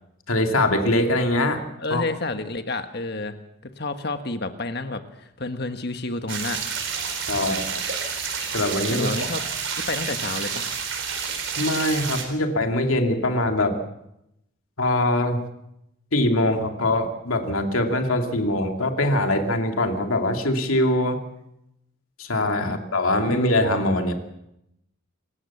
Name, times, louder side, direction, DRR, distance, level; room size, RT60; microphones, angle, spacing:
voice 1, 0.3-1.6 1.9-2.0 7.3-7.8 8.5-9.1 11.6-13.8 14.8-15.4 16.1-21.2 22.2-24.1, left 1 dB, 80° left, 4 dB, 2.5 m, -22 dB
voice 2, 1.8-3.4 3.6-6.6 8.9-9.4 9.9-10.7 22.6-22.8 23.3-23.5, left 2 dB, 50° left, 8 dB, 1.5 m, -30 dB
sound 1, 6.3-12.2, right 6 dB, 60° right, 4.3 m, -29 dB
27.0 x 14.5 x 7.2 m, 0.83 s
head